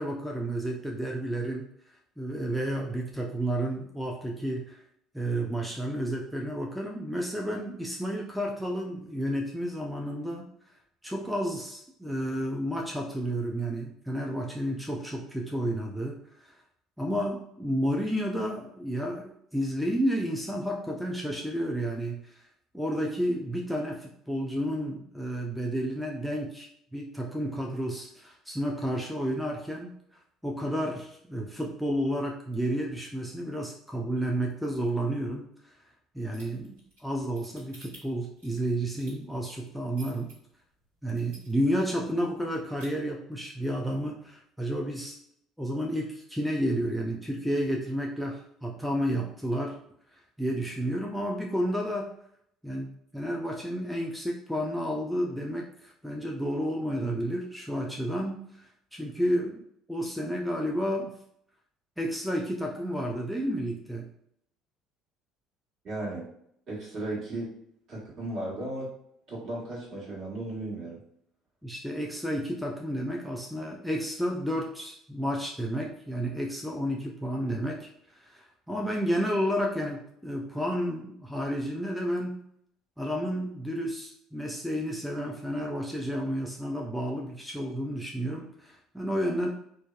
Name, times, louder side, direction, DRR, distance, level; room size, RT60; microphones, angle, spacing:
voice 1, 0.0-1.7 2.2-4.8 5.1-10.4 11.0-16.6 17.0-22.4 22.7-29.9 30.4-35.8 36.1-40.3 41.0-45.2 45.6-49.8 50.4-52.1 52.6-59.6 59.9-61.1 62.0-64.1 71.6-82.4 83.0-89.5, equal, ahead, -1 dB, 0.4 m, -31 dB
sound 1, 36.3-40.3 40.8-40.9 41.2-41.8 42.1-42.2 42.5-42.9, right 1 dB, 75° right, 1.4 m, -51 dB
voice 2, 65.8-66.2 66.7-67.5 67.9-68.9 69.3-71.0, right 2 dB, 50° right, -5 dB, 1.2 m, -35 dB
2.6 x 2.2 x 2.3 m, 0.70 s
hypercardioid pair, 60°, 0 cm